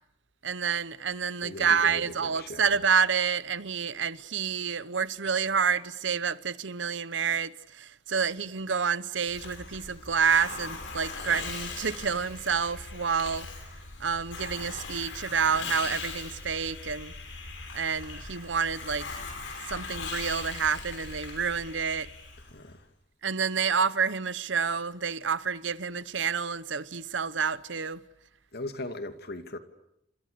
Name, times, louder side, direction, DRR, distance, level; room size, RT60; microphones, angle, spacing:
voice 1, 0.4-13.5 14.0-17.1 17.7-19.2 19.7-22.1 23.2-28.0, right 6 dB, 75° right, 1.0 m, -28 dB
voice 2, 1.4-2.8 22.5-22.9 28.5-29.6, left 2 dB, 60° left, 2.5 m, -39 dB
Hiss, 9.2-22.7, left 4 dB, 80° left, 6.5 m, -40 dB
30.0 x 27.5 x 6.9 m
head